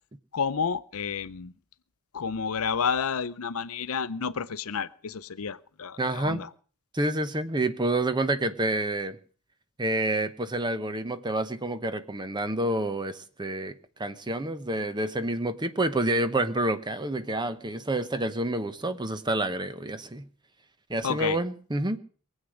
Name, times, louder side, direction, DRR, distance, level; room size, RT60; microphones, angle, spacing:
voice 1, 0.3-1.5 2.1-6.5 21.0-21.4, left 6 dB, 70° left, 0.6 m, -30 dB
voice 2, 6.0-6.4 6.9-9.2 9.8-13.7 14.0-20.3 20.9-22.0, right 1 dB, 20° right, 0.9 m, -28 dB
22.0 x 8.3 x 6.3 m
head